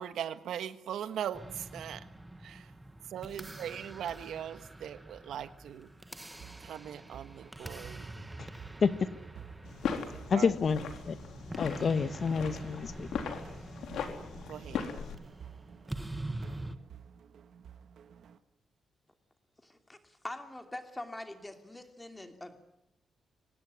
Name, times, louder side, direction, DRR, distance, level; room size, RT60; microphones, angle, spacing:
voice 1, 0.0-2.1 2.4-2.7 3.0-5.9 6.6-8.1 10.3-10.5 14.5-14.9, right 9 dB, 85° right, 1.4 m, -40 dB
sound 1, 1.3-16.8, right 1 dB, 10° right, 1.4 m, -45 dB
sound 2, 6.4-18.4, right 8 dB, 65° right, 1.9 m, -52 dB
sound 3, 9.6-15.2, left 6 dB, 90° left, 3.7 m, -39 dB
voice 2, 10.3-11.2 11.6-13.2, left 5 dB, 45° left, 1.2 m, -29 dB
voice 3, 19.6-20.0 20.2-22.6, left 1 dB, 10° left, 2.7 m, -43 dB
25.0 x 19.0 x 9.6 m
wide cardioid pair, 150°, 0 cm